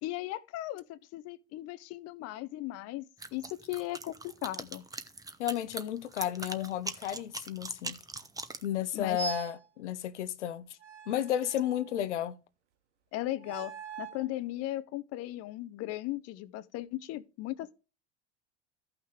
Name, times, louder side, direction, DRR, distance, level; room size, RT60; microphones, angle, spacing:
voice 1, 0.0-3.0 3.3-4.8 8.9-9.2 13.1-17.7, left 16 dB, 45° left, 0.8 m, -37 dB
sound 1, 3.2-8.7, right 3 dB, 10° right, 0.9 m, -41 dB
voice 2, 5.4-8.0 8.6-10.8 11.1-12.4, left 11 dB, 85° left, 0.8 m, -33 dB
sound 2, 9.2-9.7 10.8-12.1 13.4-14.3, right 8 dB, 85° right, 1.2 m, -42 dB
14.0 x 5.9 x 3.3 m
hypercardioid pair, 95°, 34 cm